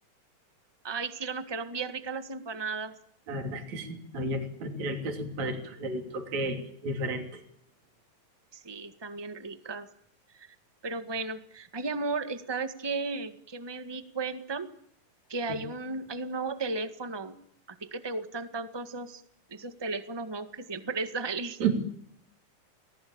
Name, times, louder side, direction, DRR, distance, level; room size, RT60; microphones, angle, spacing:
voice 1, 0.8-2.9 8.5-9.9 10.3-10.5 10.8-14.7 15.3-17.3 17.7-19.2 19.5-21.6, right 3 dB, 30° right, 9 dB, 0.5 m, -35 dB
voice 2, 3.3-7.4 21.6-21.7, right 2 dB, 55° right, 4 dB, 4.3 m, -32 dB
29.5 x 20.0 x 8.7 m, 0.72 s
omnidirectional pair, 3.8 m